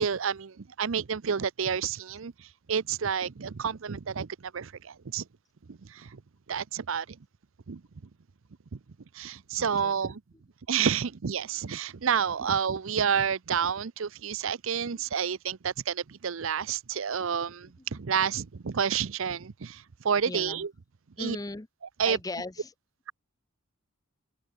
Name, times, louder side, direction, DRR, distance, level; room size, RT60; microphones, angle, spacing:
voice 1, 0.0-5.2 5.7-6.2 6.5-7.2 7.7-7.8 8.7-8.8 9.1-10.2 10.7-20.7 21.2-21.4 22.0-22.2, right 7 dB, 65° right, 0.6 m, -30 dB
voice 2, 9.6-10.0 14.9-15.0 17.9-18.0 20.3-20.7 21.2-21.7 22.1-22.7, left 2 dB, 15° left, 0.6 m, -38 dB
head